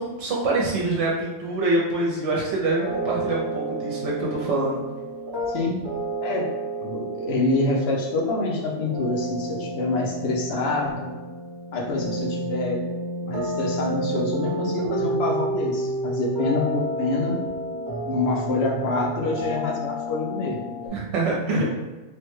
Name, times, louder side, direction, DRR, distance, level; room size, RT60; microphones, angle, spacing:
voice 1, 0.0-4.8 20.9-21.7, right 2 dB, 70° right, -3 dB, 0.9 m, -25 dB
sound 1, 2.7-20.9, right 1 dB, 25° right, 0.6 m, -30 dB
voice 2, 6.2-6.5 6.8-11.1 11.7-12.8 13.2-17.4 18.0-20.6 21.5-21.6, left 2 dB, 60° left, -1 dB, 0.8 m, -26 dB
3.2 x 2.1 x 3.0 m, 1.2 s
omnidirectional pair, 1.3 m